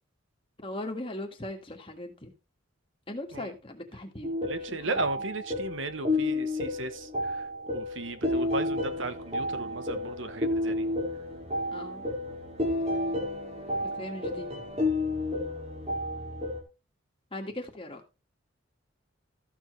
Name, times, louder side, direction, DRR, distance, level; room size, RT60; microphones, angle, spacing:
voice 1, 0.6-2.4 3.1-4.4 4.7-5.1 11.7-12.0 13.8-14.5 17.3-18.0, left 1 dB, 25° left, 1.8 m, -39 dB
sound 1, 4.2-16.6, left 1 dB, 35° right, 2.5 m, -31 dB
voice 2, 4.5-7.4 7.7-10.8, right 3 dB, 70° right, 1.1 m, -36 dB
14.0 x 7.2 x 3.2 m
head